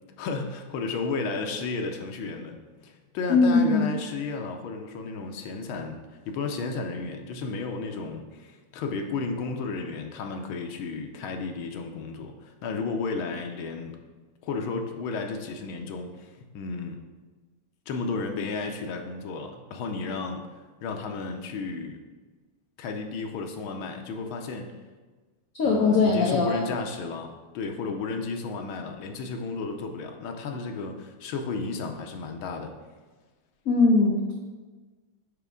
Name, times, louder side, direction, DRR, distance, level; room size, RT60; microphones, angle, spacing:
voice 1, 0.2-2.6 2.8-14.0 14.4-17.0 17.9-20.5 20.8-22.0 22.8-24.8 25.6-32.7, left 4 dB, 90° left, 4 dB, 1.5 m, -33 dB
voice 2, 3.3-3.9 25.6-26.7 33.6-34.3, left 3 dB, 60° left, -1 dB, 0.9 m, -21 dB
6.8 x 5.1 x 3.6 m, 1.3 s
omnidirectional pair, 2.3 m